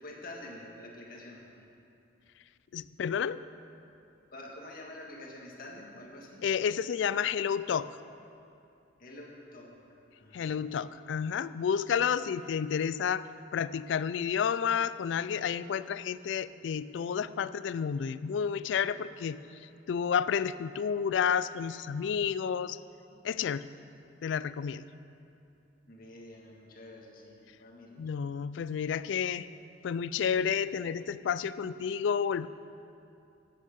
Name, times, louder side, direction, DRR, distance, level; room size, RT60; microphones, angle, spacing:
voice 1, 0.0-1.6 4.3-6.4 9.0-9.8 10.2-10.9 25.9-28.0, left 1 dB, 50° left, -1 dB, 1.7 m, -47 dB
voice 2, 2.7-3.4 6.4-7.9 10.3-13.2 13.5-22.8 23.2-23.7 24.2-24.8 28.0-29.5 29.8-32.5, left 7 dB, 75° left, 16 dB, 0.3 m, -30 dB
11.0 x 9.2 x 5.3 m, 2.7 s
head